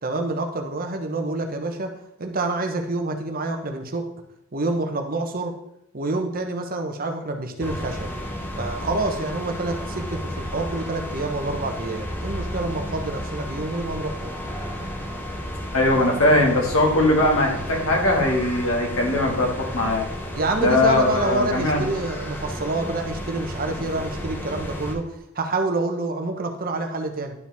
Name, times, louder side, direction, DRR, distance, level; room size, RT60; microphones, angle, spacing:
voice 1, 0.0-1.9 2.2-4.1 4.5-5.5 5.9-8.1 8.6-14.4 20.3-27.3, right 2 dB, 45° right, 5 dB, 0.9 m, -27 dB
sound 1, 7.6-24.9, equal, 10° left, 1.0 m, -32 dB
voice 2, 15.7-20.1 20.6-21.8, left 2 dB, 85° left, 0 dB, 1.9 m, -20 dB
11.0 x 5.1 x 3.5 m, 0.78 s
head